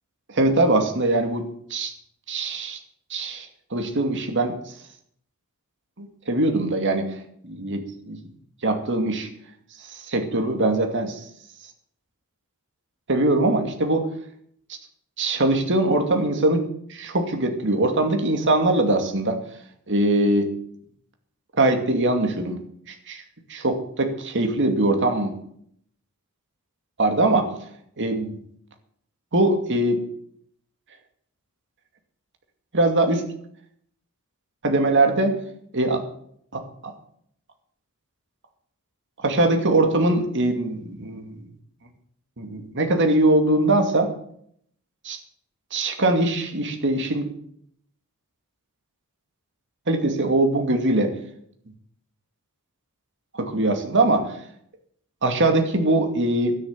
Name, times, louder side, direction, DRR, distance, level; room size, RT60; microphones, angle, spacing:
voice 1, 0.3-1.4 1.7-1.9 2.3-2.8 3.1-4.5 6.0-7.1 7.4-8.2 8.6-9.3 9.9-11.2 13.1-14.1 15.2-16.6 16.9-19.4 19.9-20.5 21.6-22.6 23.1-23.2 23.5-25.3 27.0-27.5 28.0-28.4 29.3-30.0 32.7-33.2 34.6-35.4 35.7-36.0 36.5-36.9 39.2-41.4 42.4-44.1 45.0-45.2 45.7-47.3 49.9-51.1 53.3-54.3 55.2-56.6, right 2 dB, 55° right, 5 dB, 2.3 m, -22 dB
12.5 x 10.5 x 7.4 m, 0.67 s
head